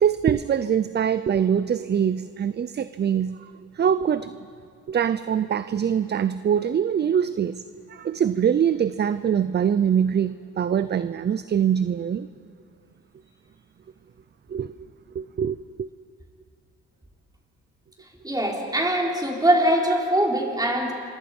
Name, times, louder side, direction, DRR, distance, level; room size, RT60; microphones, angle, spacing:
voice 1, 0.0-4.4 4.9-12.3 14.5-14.7 15.1-15.9, right 8 dB, 35° right, 0.6 m, -23 dB
voice 2, 18.2-20.9, right 1 dB, 10° right, 4.8 m, -22 dB
27.5 x 24.0 x 5.4 m
cardioid pair, 90°, 30 cm